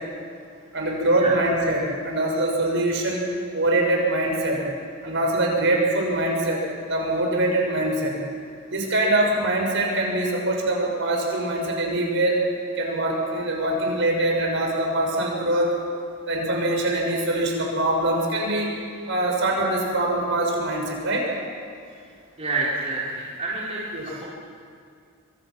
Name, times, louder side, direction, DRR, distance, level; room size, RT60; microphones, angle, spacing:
voice 1, 0.7-3.3 3.5-4.6 5.0-6.6 6.9-8.2 8.7-12.4 12.8-15.8 16.3-18.7 19.1-21.3 23.9-24.1, right 1 dB, 65° right, 0 dB, 6.2 m, -23 dB
voice 2, 22.4-24.3, right 3 dB, 30° right, -6 dB, 4.0 m, -28 dB
25.5 x 25.0 x 6.1 m, 2.3 s
head